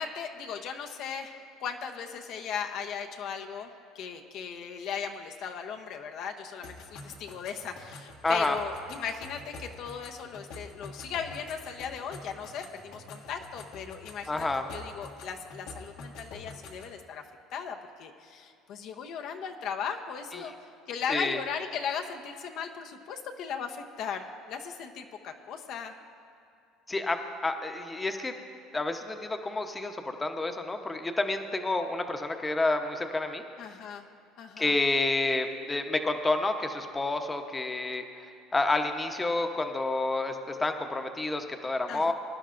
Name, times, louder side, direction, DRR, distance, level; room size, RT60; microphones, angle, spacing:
voice 1, 0.0-3.7 3.9-17.2 17.5-20.5 20.9-25.9 33.6-34.1 34.4-34.7 41.9-42.1, left 7 dB, 65° left, 4 dB, 0.7 m, -37 dB
sound 1, 6.6-17.0, left 3 dB, 80° left, 1.6 m, -47 dB
voice 2, 8.2-8.6 14.3-14.7 20.4-20.5 21.1-21.4 26.9-28.3 28.7-33.4 34.6-38.0 38.5-42.1, left 2 dB, 15° left, 5 dB, 0.9 m, -29 dB
21.5 x 11.0 x 2.6 m, 2.4 s
supercardioid pair, 100°, 0 cm